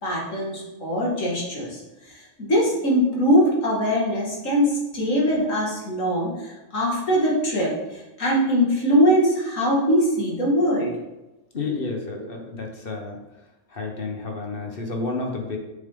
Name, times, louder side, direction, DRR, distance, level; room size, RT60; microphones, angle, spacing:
voice 1, 0.0-10.9, equal, 90° left, -4 dB, 2.7 m, -22 dB
voice 2, 11.5-13.2 13.7-15.6, left 3 dB, 45° left, 2 dB, 1.5 m, -30 dB
7.3 x 7.3 x 3.9 m, 1.0 s
omnidirectional pair, 1.3 m